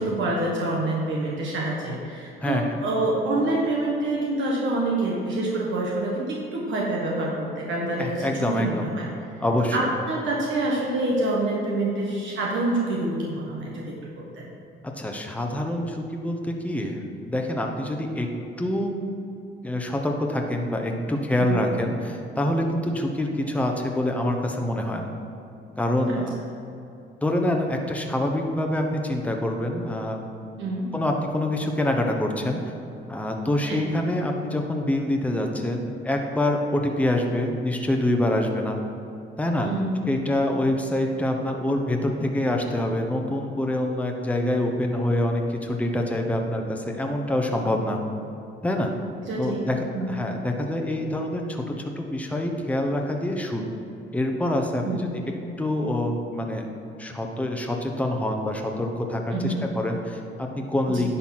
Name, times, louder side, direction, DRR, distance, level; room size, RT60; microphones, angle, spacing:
voice 1, 0.0-9.1 9.7-13.8 14.2-14.3 21.4-21.6 26.1-26.2 30.6-30.8 33.7-33.8 39.6-40.0 49.3-49.6 49.9-50.1 54.8-55.2 59.3-59.7 60.9-61.0, right 2 dB, 70° right, -3 dB, 1.4 m, -26 dB
voice 2, 2.4-2.8 8.0-8.9 9.4-9.9 14.8-18.3 18.6-18.9 19.6-25.1 25.8-26.4 27.2-30.2 30.9-32.6 33.1-38.8 39.4-39.7 40.0-48.0 48.6-48.9 49.4-53.7 54.1-55.2 55.6-56.7 57.0-61.2, left 1 dB, 5° left, 2 dB, 0.9 m, -26 dB
10.5 x 4.1 x 5.9 m, 2.7 s
cardioid pair, 90°, 20 cm